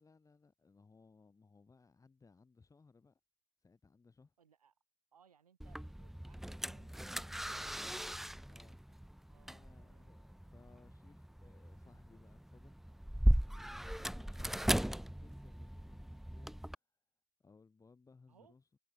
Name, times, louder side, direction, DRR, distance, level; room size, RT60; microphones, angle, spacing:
voice 1, 0.0-3.2 3.6-4.3 7.6-8.1 8.5-8.8 9.4-17.0 17.4-18.8, left 4 dB, 15° left, 7.3 m, -64 dB
voice 2, 4.4-4.7 5.1-8.1 9.3-10.1 18.3-18.6, right 7 dB, 85° right, 7.9 m, -68 dB
sound 1, 5.6-16.7, equal, ahead, 0.9 m, -38 dB
hypercardioid pair, 85°, 19 cm